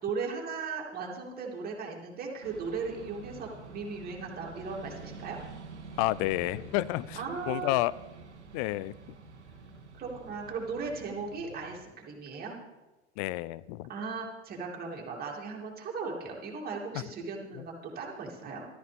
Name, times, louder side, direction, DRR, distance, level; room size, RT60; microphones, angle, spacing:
voice 1, 0.0-5.4 7.2-7.7 9.9-12.6 13.9-18.7, right 4 dB, 25° right, -1 dB, 3.0 m, -37 dB
sound 1, 2.4-11.8, right 4 dB, 80° right, 1.6 m, -48 dB
voice 2, 6.0-7.2 7.5-7.9 8.5-8.9 13.2-13.9, left 17 dB, 35° left, 21 dB, 0.4 m, -29 dB
14.5 x 13.5 x 3.6 m, 1.1 s
figure-of-eight pair, 95°, 34 cm